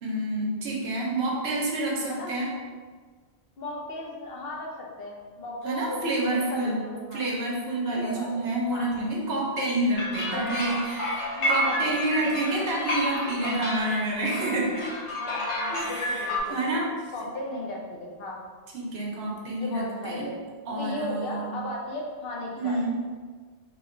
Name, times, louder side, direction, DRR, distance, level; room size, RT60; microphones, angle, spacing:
voice 1, 0.0-2.5 5.6-6.8 7.1-14.9 15.7-16.9 18.7-20.3 20.7-21.5 22.6-23.0, right 1 dB, 70° right, -3 dB, 1.0 m, -28 dB
voice 2, 3.6-7.2 7.8-8.4 8.7-8.9 10.3-10.9 11.4-12.1 15.2-16.7 17.1-18.4 19.6-20.3 20.8-22.8, left 1 dB, 65° left, -2 dB, 0.8 m, -36 dB
sound 1, 9.9-16.4, left 1 dB, 85° left, 1.1 m, -30 dB
3.0 x 2.2 x 3.6 m, 1.5 s
omnidirectional pair, 1.1 m